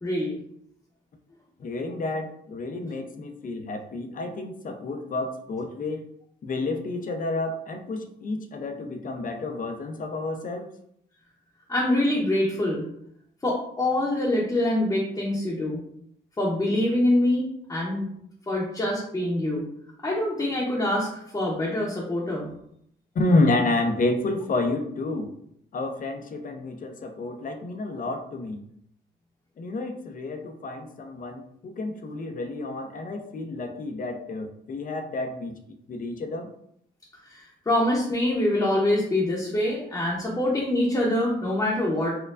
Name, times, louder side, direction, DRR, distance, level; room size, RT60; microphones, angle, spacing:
voice 1, 0.0-0.4 11.7-12.8 13.4-15.8 16.4-18.1 18.5-19.6 20.0-22.5 37.3-42.1, left 1 dB, 15° left, -5 dB, 0.8 m, -25 dB
voice 2, 1.6-6.0 6.4-10.7 23.1-25.3 25.7-28.6 29.6-35.6 35.9-36.5, left 2 dB, 45° left, 6 dB, 0.6 m, -29 dB
4.4 x 2.2 x 2.4 m, 0.72 s
cardioid pair, 90°, 20 cm